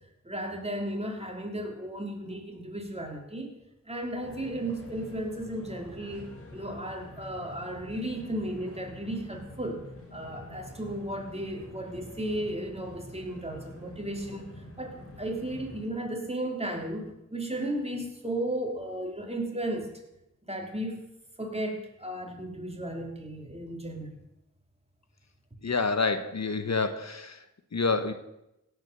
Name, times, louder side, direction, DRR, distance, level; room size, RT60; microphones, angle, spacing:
voice 1, 0.2-3.5 3.8-9.8 10.1-19.9 20.4-21.0 21.4-24.2, right 1 dB, 20° right, 2 dB, 3.2 m, -35 dB
sound 1, 4.2-15.9, left 1 dB, 50° left, 4.9 m, -46 dB
voice 2, 25.6-27.4 27.7-28.1, left 4 dB, 65° left, 10 dB, 1.1 m, -28 dB
17.0 x 7.9 x 6.8 m, 0.87 s
wide cardioid pair, 50°, 29 cm